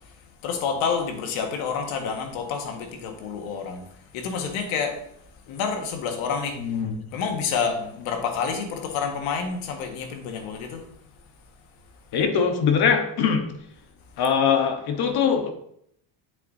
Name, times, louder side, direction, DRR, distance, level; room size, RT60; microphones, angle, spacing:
voice 1, 0.4-3.8 4.1-5.0 5.5-6.6 7.1-10.8, left 6 dB, 75° left, 1.7 m, -28 dB
voice 2, 6.6-7.0 12.1-13.5 14.2-15.5, left 6 dB, 50° left, 1.3 m, -22 dB
9.1 x 7.5 x 2.8 m
cardioid pair, 130°, 48 cm